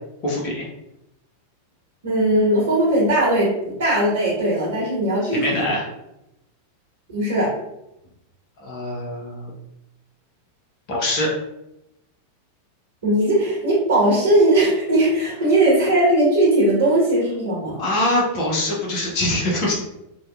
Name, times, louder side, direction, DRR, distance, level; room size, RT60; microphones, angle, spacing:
voice 1, 0.2-0.7 5.2-5.9 8.6-9.5 10.9-11.3 17.8-19.7, left 1 dB, 40° left, -3 dB, 0.7 m, -23 dB
voice 2, 2.0-5.7 7.1-7.5 13.0-17.8, right 1 dB, 60° right, -6 dB, 1.0 m, -19 dB
2.7 x 2.1 x 2.3 m, 0.86 s
figure-of-eight pair, 90°, 0 cm